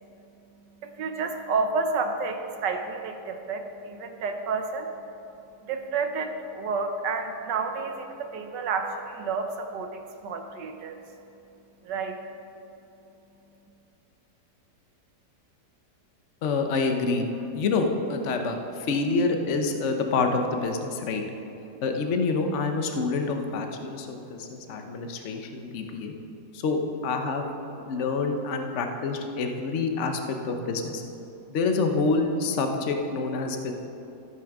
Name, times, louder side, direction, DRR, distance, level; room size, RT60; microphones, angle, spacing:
voice 1, 0.5-11.2 11.8-12.2, right 4 dB, 85° right, 5 dB, 1.5 m, -31 dB
voice 2, 16.4-21.2 21.8-26.1 26.5-31.0 31.5-33.7, left 3 dB, 50° left, 4 dB, 1.1 m, -27 dB
14.0 x 6.3 x 6.0 m, 2.9 s
omnidirectional pair, 1.8 m